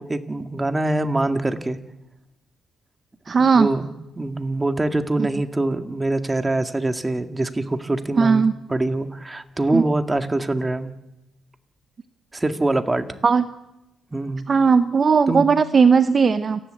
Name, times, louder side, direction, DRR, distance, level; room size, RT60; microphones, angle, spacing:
voice 1, 0.0-1.8 3.3-3.9 4.2-10.9 12.3-13.1 14.1-14.4 15.3-15.5, right 2 dB, 15° right, 7 dB, 1.9 m, -24 dB
voice 2, 3.3-3.7 8.2-8.5 9.7-9.8 13.2-13.5 14.5-16.6, right 5 dB, 40° right, 11 dB, 0.8 m, -17 dB
29.0 x 11.5 x 8.0 m, 0.91 s
cardioid pair, 90°, 0 cm